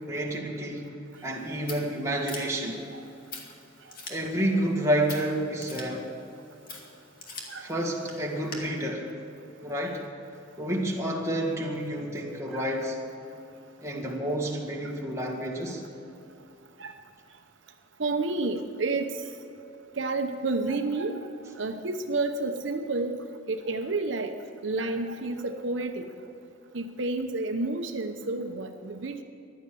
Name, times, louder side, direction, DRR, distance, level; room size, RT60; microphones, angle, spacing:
voice 1, 0.1-0.9 1.2-2.8 4.1-6.1 7.6-9.1 9.6-10.1 10.6-13.0 13.8-15.8, right 1 dB, 15° right, -2 dB, 2.0 m, -29 dB
Scissors, 1.1-8.6, left 3 dB, 45° left, 2.3 m, -45 dB
voice 2, 7.5-7.8 12.5-12.7 14.8-14.9 16.8-16.9 18.0-19.2 20.0-21.3 21.6-26.2 26.7-29.2, right 3 dB, 75° right, 6 dB, 0.9 m, -30 dB
15.0 x 11.5 x 6.9 m, 2.8 s
head